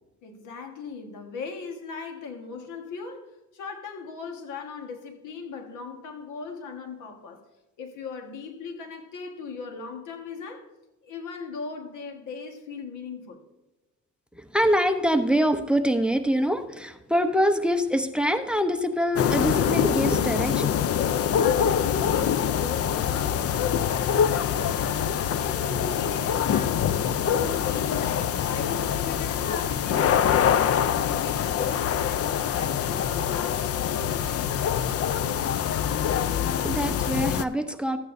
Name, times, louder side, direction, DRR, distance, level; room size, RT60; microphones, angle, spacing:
voice 1, 0.2-3.3 3.5-7.4 7.8-10.7 11.0-13.4 21.3-33.6 33.9-35.0 37.0-37.1, left 5 dB, 90° left, 1.5 m, -38 dB
voice 2, 14.3-20.7 36.5-38.0, equal, 5° right, 0.7 m, -24 dB
sound 1, 19.2-37.4, left 8 dB, 50° left, 0.5 m, -25 dB
13.5 x 8.9 x 2.6 m
cardioid pair, 90°, 30 cm